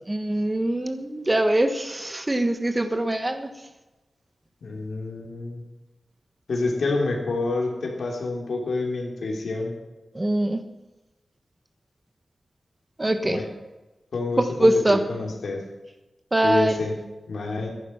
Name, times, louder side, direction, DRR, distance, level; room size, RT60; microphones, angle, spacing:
voice 1, 0.1-3.5 10.1-10.6 13.0-13.4 14.6-15.0 16.3-16.7, right 1 dB, 20° right, 8 dB, 1.4 m, -23 dB
voice 2, 4.6-5.6 6.5-9.7 13.2-13.5 14.1-15.6 16.4-17.0 17.3-17.7, left 3 dB, 85° left, 1 dB, 3.3 m, -28 dB
14.5 x 11.0 x 5.9 m, 1.1 s
wide cardioid pair, 115°, 0 cm